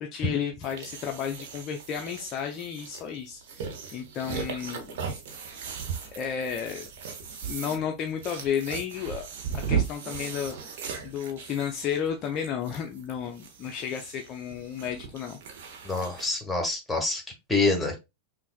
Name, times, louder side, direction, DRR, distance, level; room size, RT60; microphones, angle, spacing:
voice 1, 0.0-3.6 3.9-5.0 6.2-6.9 7.4-9.3 9.5-15.4, left 8 dB, 35° left, 0.5 m, -32 dB
sound 1, 0.6-16.4, right 6 dB, 55° right, 0.9 m, -37 dB
voice 2, 15.8-17.2 17.5-18.0, left 3 dB, 5° left, 1.3 m, -26 dB
5.5 x 2.5 x 2.3 m
figure-of-eight pair, 90°, 0 cm